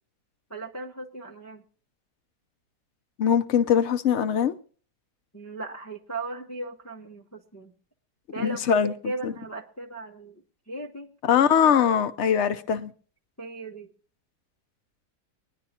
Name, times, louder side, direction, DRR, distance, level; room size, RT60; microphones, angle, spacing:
voice 1, 0.5-1.6 5.3-7.7 8.3-8.8 9.0-11.9 13.4-13.9, right 2 dB, 15° left, 0.5 m, -37 dB
voice 2, 3.2-4.5 8.4-8.9 9.2-9.3 11.3-12.9, left 8 dB, 60° left, 0.8 m, -22 dB
24.0 x 9.8 x 2.8 m
omnidirectional pair, 1.8 m